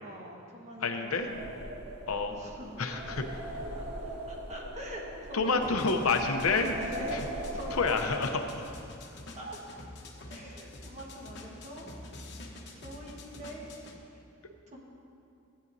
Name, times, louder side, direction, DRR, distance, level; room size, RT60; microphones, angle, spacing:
voice 1, 0.0-1.5 2.3-2.8 3.7-3.9 4.3-6.2 6.4-7.3 7.5-7.8 9.3-9.6 10.3-12.1 12.7-13.7 14.1-14.2 14.7-14.8, equal, 35° right, -2 dB, 1.5 m, -44 dB
voice 2, 0.8-1.3 2.1-2.3 2.8-3.4 5.3-6.7 7.8-8.7, left 4 dB, 90° left, 5 dB, 0.8 m, -28 dB
sound 1, 1.0-8.6, right 1 dB, 80° right, 1.6 m, -41 dB
sound 2, 5.6-14.0, left 1 dB, 55° left, 1.0 m, -47 dB
15.5 x 8.9 x 2.7 m, 2.6 s
head